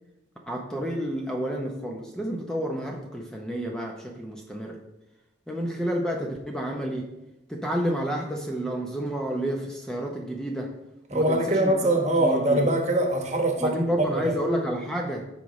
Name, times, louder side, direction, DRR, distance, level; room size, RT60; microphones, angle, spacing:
voice 1, 0.5-4.8 5.5-7.1 7.5-10.7 11.1-11.7 12.2-12.7 13.6-15.3, right 1 dB, 5° left, 0 dB, 0.7 m, -30 dB
voice 2, 11.1-14.3, right 1 dB, 35° right, 3 dB, 1.2 m, -23 dB
14.0 x 5.0 x 3.1 m, 0.91 s
head